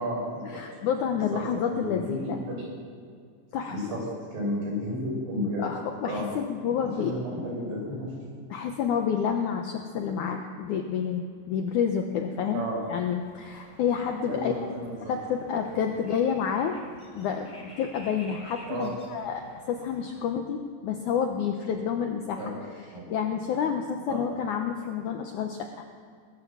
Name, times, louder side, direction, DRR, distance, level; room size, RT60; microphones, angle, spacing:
voice 1, 0.0-0.6 1.3-1.4 1.7-2.5 3.7-4.0 4.3-5.6 6.0-6.3 6.6-8.1 12.5-12.8 14.3-15.1 18.7-18.9 22.4-22.6 22.9-23.1 24.1-24.2, equal, 80° right, -3 dB, 8.0 m, -32 dB
voice 2, 0.5-2.4 3.5-3.8 5.6-7.1 8.5-12.6 12.9-14.5 15.1-16.7 17.1-22.4 23.1-25.9, left 7 dB, 75° left, 4 dB, 1.8 m, -29 dB
sound 1, 13.2-20.2, equal, 15° left, 3.3 m, -51 dB
20.5 x 9.3 x 7.4 m, 2.2 s
omnidirectional pair, 4.6 m